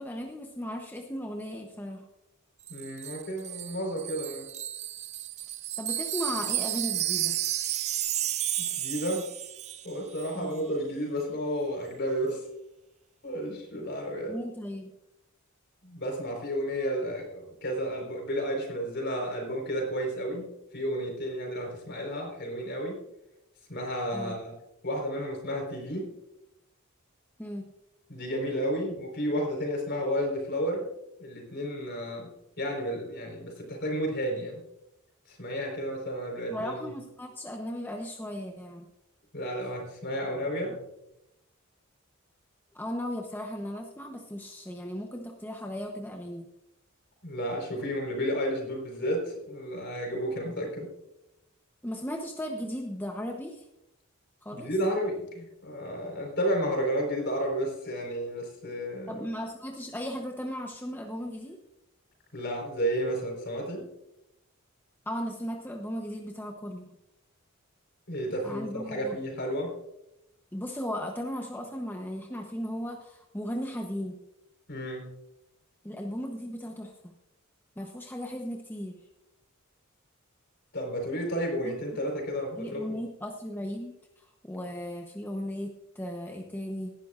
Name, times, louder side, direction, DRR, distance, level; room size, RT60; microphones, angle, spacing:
voice 1, 0.0-2.1 5.8-7.4 10.3-10.6 14.2-14.9 24.1-24.4 27.4-27.7 36.5-38.9 42.7-46.5 51.8-53.6 54.4-54.7 59.1-61.6 65.1-67.0 68.4-69.2 70.5-74.2 75.8-77.1 77.8-79.0 81.6-81.7 82.6-86.9, equal, 10° left, 2 dB, 0.8 m, -36 dB
voice 2, 2.7-4.5 8.6-9.2 9.8-12.4 13.2-14.4 15.8-23.0 23.7-24.5 24.8-26.1 28.1-30.9 31.2-32.3 32.6-34.6 35.3-36.9 39.3-40.8 47.2-50.9 54.5-59.3 62.3-63.8 68.1-69.7 74.7-75.1 80.7-82.9, equal, 55° left, 1 dB, 4.3 m, -32 dB
Wind chime, 2.7-9.9 10.2-10.4, right 12 dB, 30° right, 0.3 m, -32 dB
18.0 x 11.5 x 2.5 m, 0.87 s
head